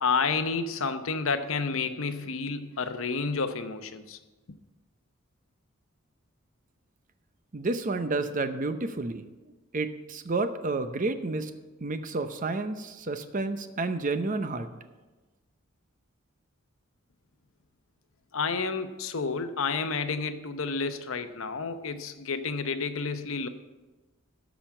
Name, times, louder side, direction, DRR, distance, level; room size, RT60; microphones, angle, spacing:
voice 1, 0.0-4.2 18.3-23.5, left 4 dB, 75° left, 0.8 m, -30 dB
voice 2, 7.5-9.3 9.7-11.5 11.8-14.7, right 3 dB, 40° right, 0.7 m, -30 dB
13.0 x 5.1 x 7.3 m
head